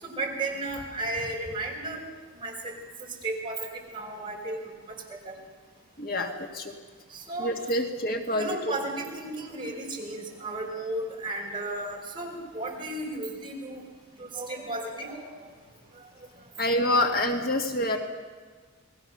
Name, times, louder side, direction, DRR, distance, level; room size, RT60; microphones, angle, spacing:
voice 1, 0.0-2.0 2.4-2.8 3.2-4.7 5.3-5.4 7.1-7.5 8.3-13.8 14.2-15.5, right 2 dB, 20° right, -2 dB, 5.3 m, -34 dB
voice 2, 6.0-6.7 7.4-8.7 16.6-18.0, left 1 dB, 45° left, 3 dB, 1.8 m, -27 dB
29.5 x 20.0 x 6.8 m, 1.5 s
head